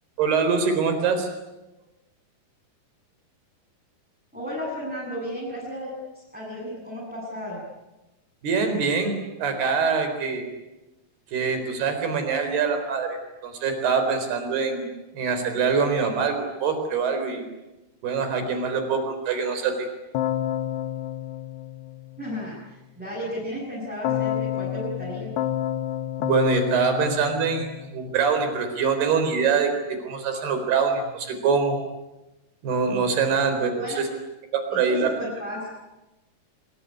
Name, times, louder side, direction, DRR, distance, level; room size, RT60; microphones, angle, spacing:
voice 1, 0.2-1.3 8.4-10.5 11.3-13.2 13.4-14.9 15.1-17.4 18.0-19.7 26.2-29.7 30.0-31.8 32.6-34.1 34.5-35.1, right 5 dB, 75° right, 7 dB, 6.1 m, -24 dB
voice 2, 4.3-7.6 22.2-25.3 30.2-30.4 33.7-34.0 34.7-35.7, equal, ahead, -6 dB, 7.7 m, -34 dB
Keyboard (musical), 20.1-22.5 24.0-28.3, left 11 dB, 85° left, 3.4 m, -29 dB
26.5 x 22.0 x 9.9 m, 1.0 s
omnidirectional pair, 4.6 m